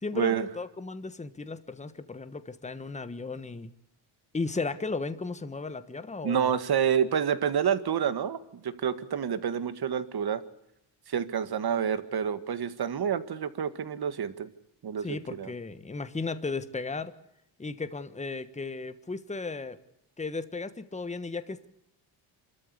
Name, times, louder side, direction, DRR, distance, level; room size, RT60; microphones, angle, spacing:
voice 1, 0.0-3.7 4.3-6.5 15.0-17.1 17.6-19.8 20.2-21.7, left 3 dB, 15° left, 12 dB, 1.4 m, -35 dB
voice 2, 6.2-8.4 8.6-10.4 11.1-14.5 14.8-15.5, right 8 dB, 50° right, 13 dB, 1.9 m, -28 dB
28.0 x 13.5 x 8.3 m, 0.81 s
cardioid pair, 120°, 49 cm